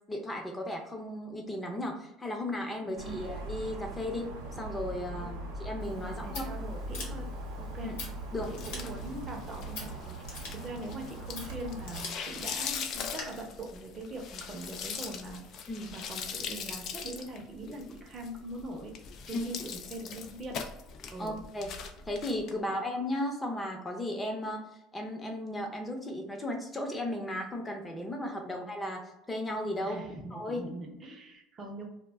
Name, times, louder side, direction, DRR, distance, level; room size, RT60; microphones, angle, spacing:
voice 1, 0.1-4.3 4.6-6.4 7.8-8.0 8.3-8.5 15.7-15.9 19.3-19.5 21.2-21.7 22.1-24.6 24.9-29.0 29.3-30.0 30.3-30.6, left 1 dB, 15° left, 2 dB, 0.7 m, -35 dB
voice 2, 2.8-3.2 6.0-7.3 7.6-7.9 8.5-15.6 15.9-18.9 19.3-20.6 21.1-21.4 22.7-22.8 28.4-28.6 29.8-31.9, right 1 dB, 35° right, 2 dB, 0.7 m, -42 dB
sound 1, 3.0-12.0, right 1 dB, 85° right, 0.6 m, -40 dB
Scissors, 5.8-13.2, left 3 dB, 85° left, 0.9 m, -46 dB
sound 2, 8.4-22.5, left 6 dB, 55° left, 0.4 m, -41 dB
2.2 x 2.1 x 3.3 m, 0.87 s
supercardioid pair, 100°, 0 cm